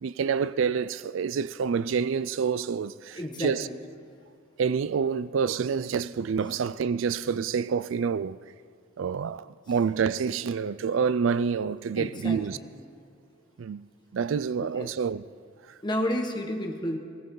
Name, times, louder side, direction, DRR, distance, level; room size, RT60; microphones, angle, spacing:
voice 1, 0.0-3.7 4.6-8.4 9.0-12.6 13.6-13.8 14.1-15.2, right 6 dB, 70° right, 0.4 m, -27 dB
voice 2, 3.1-3.8 12.0-12.7 14.6-14.9 15.8-17.0, left 1 dB, 20° left, 1.4 m, -31 dB
18.5 x 17.0 x 3.9 m
head